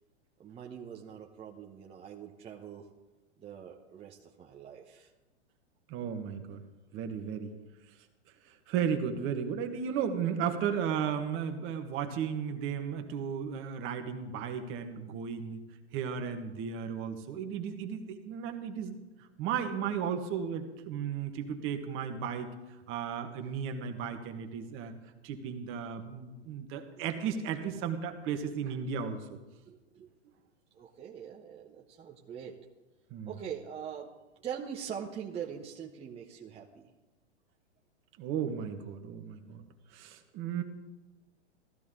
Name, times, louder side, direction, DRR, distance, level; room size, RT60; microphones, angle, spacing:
voice 1, 0.4-2.9 3.4-5.1 27.0-27.1 29.7-30.1 30.7-32.6 33.2-34.1 34.4-36.9, right 8 dB, 15° right, -2 dB, 1.0 m, -43 dB
voice 2, 5.9-6.6 6.9-7.5 8.4-15.6 15.9-19.0 19.4-22.5 22.9-24.9 25.2-29.2 33.1-33.3 38.2-39.7 39.9-40.6, right 7 dB, 35° right, 6 dB, 1.5 m, -34 dB
15.5 x 14.0 x 3.8 m, 1.1 s
hypercardioid pair, 115°, 34 cm